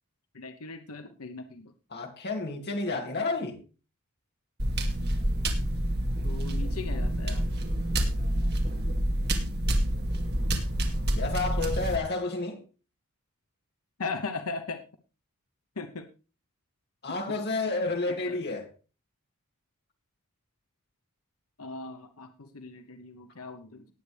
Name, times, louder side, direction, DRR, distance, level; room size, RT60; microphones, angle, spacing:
voice 1, 0.3-1.7 6.2-7.5 14.0-14.8 15.8-16.1 17.8-17.9 18.3-18.4 21.6-23.9, left 4 dB, 90° left, 1.0 m, -38 dB
voice 2, 1.9-3.6 11.1-12.6 17.0-18.7, left 3 dB, 50° left, 2.6 m, -30 dB
sound 1, 4.6-12.0, right 1 dB, 50° right, 2.4 m, -28 dB
19.0 x 8.3 x 3.4 m
head